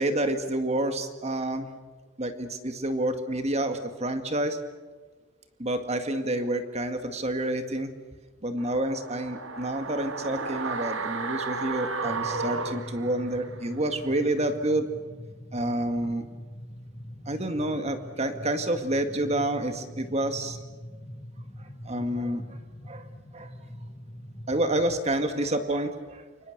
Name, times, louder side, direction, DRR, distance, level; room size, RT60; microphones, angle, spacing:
voice 1, 0.0-1.7 2.2-4.6 5.6-7.9 8.4-14.9 15.5-16.2 17.3-20.6 21.8-22.6 22.9-23.0 23.3-23.5 24.5-26.5, right 1 dB, 35° right, 7 dB, 2.0 m, -28 dB
sound 1, 8.6-13.7 14.0-14.1, right 4 dB, 75° right, 1.8 m, -33 dB
sound 2, 12.0-25.0, equal, 20° left, 5.1 m, -43 dB
28.5 x 25.0 x 6.7 m, 1.4 s
head